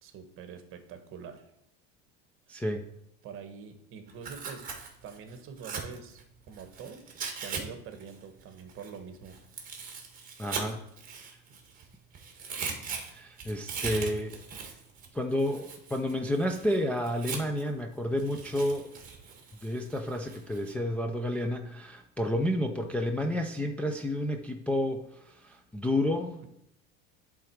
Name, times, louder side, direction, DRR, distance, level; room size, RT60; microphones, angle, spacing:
voice 1, 0.0-1.4 2.5-2.6 3.2-4.7 5.0-7.0 7.3-9.4 11.5-11.6, right 6 dB, 45° right, 7 dB, 1.2 m, -45 dB
voice 2, 2.5-2.8 10.4-10.8 13.0-14.3 15.1-18.9 19.6-26.5, left 1 dB, 5° left, 2 dB, 0.3 m, -30 dB
Tearing, 4.1-7.6 7.9-11.8 12.1-17.7 18.2-20.7, right 5 dB, 30° right, 1.5 m, -40 dB
11.0 x 3.8 x 4.5 m, 0.80 s
cardioid pair, 140°, 29 cm